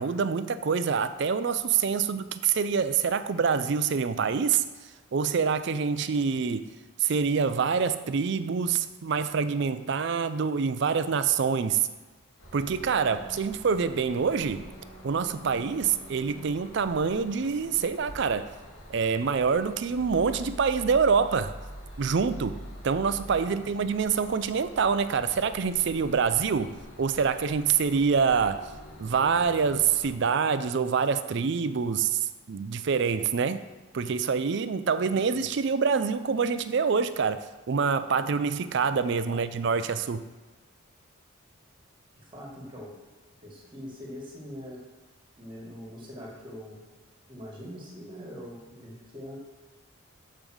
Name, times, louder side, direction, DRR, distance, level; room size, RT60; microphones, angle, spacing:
voice 1, 0.0-4.6 5.1-6.7 7.0-11.9 12.5-14.7 15.0-18.5 18.9-21.6 22.0-28.7 29.0-33.6 33.9-40.3, right 6 dB, 55° right, 12 dB, 0.4 m, -26 dB
sound 1, 12.4-30.1, equal, 80° left, 2.7 m, -45 dB
voice 2, 42.1-42.9 43.4-44.8 45.4-46.8 47.3-49.4, equal, 20° right, -2 dB, 1.6 m, -43 dB
7.1 x 5.1 x 6.2 m, 1.3 s
head